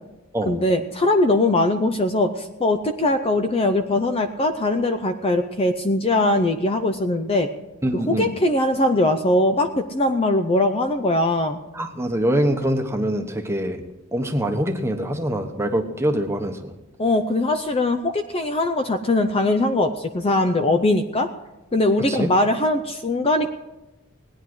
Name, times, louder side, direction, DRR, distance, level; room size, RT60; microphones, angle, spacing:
voice 1, 0.5-7.5 7.9-11.6 17.0-21.3 21.7-23.5, left 2 dB, 25° left, 8 dB, 0.6 m, -21 dB
voice 2, 7.8-8.3 11.7-13.8 14.1-16.7 22.1-22.3, right 1 dB, 10° right, 4 dB, 1.1 m, -24 dB
18.5 x 10.0 x 4.7 m, 0.99 s
head